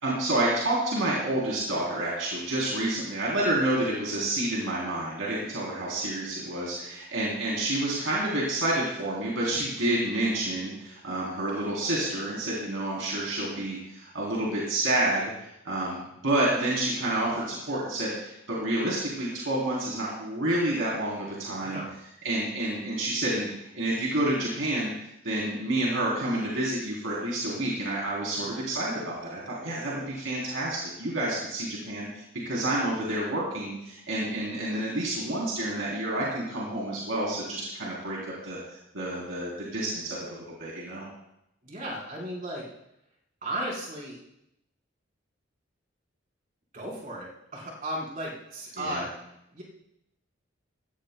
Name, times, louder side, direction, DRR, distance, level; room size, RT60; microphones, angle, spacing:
voice 1, 0.0-21.8 22.2-24.9 25.2-38.6 38.9-41.1 48.8-49.1, right 1 dB, 80° right, -5 dB, 3.5 m, -29 dB
voice 2, 21.6-21.9 41.6-42.7 43.4-44.2 46.7-49.1 49.5-49.6, right 1 dB, 40° right, -4 dB, 4.4 m, -35 dB
19.5 x 15.5 x 2.3 m, 0.81 s
head